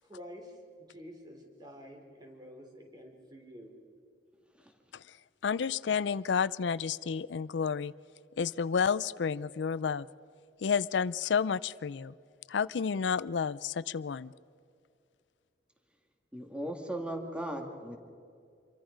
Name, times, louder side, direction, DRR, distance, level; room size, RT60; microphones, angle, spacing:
voice 1, 0.0-3.8, equal, 25° right, 2 dB, 3.8 m, -49 dB
voice 2, 5.4-7.9 8.4-10.1 10.6-12.1 12.5-14.3, left 6 dB, 85° left, 18 dB, 0.5 m, -30 dB
voice 3, 16.3-18.0, right 1 dB, 5° right, 4 dB, 2.2 m, -37 dB
27.0 x 23.0 x 5.2 m, 2.4 s
head